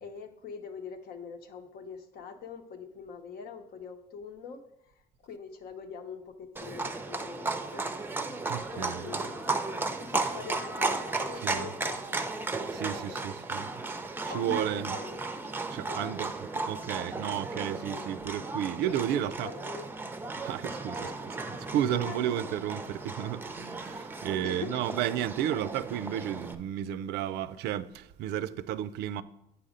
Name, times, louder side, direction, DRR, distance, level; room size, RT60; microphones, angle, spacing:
voice 1, 0.0-8.0 8.7-9.7 10.0-13.3 14.3-15.2 15.9-16.2 17.9-18.1 19.1-19.9 21.0-21.2 21.9-22.6 24.4-24.9, left 5 dB, 65° left, 0.9 m, -44 dB
Livestock farm animals working animals, 6.6-26.6, right 3 dB, 10° right, 0.5 m, -35 dB
voice 2, 8.5-9.1 11.4-11.7 12.7-13.8 14.3-14.9 15.7-19.5 20.4-21.3 21.6-29.2, right 11 dB, 80° right, 0.4 m, -33 dB
8.4 x 4.2 x 5.1 m
cardioid pair, 110°, 17 cm